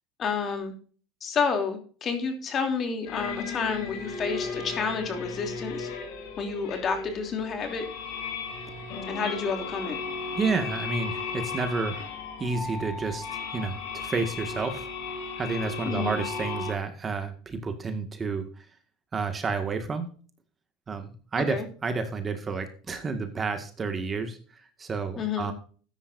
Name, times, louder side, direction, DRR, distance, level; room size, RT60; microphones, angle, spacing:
voice 1, 0.2-0.7 1.2-5.9 6.4-7.9 9.1-10.0 15.8-16.2 21.4-21.6 25.2-25.5, left 5 dB, 35° left, 5 dB, 3.0 m, -30 dB
sound 1, 3.1-16.7, left 4 dB, 75° left, 4.0 m, -35 dB
voice 2, 10.4-13.3 13.5-14.9 15.4-18.7 19.1-20.1 20.9-25.5, right 4 dB, 25° right, 7 dB, 1.9 m, -30 dB
13.0 x 10.5 x 2.7 m, 0.41 s
supercardioid pair, 110°, 0 cm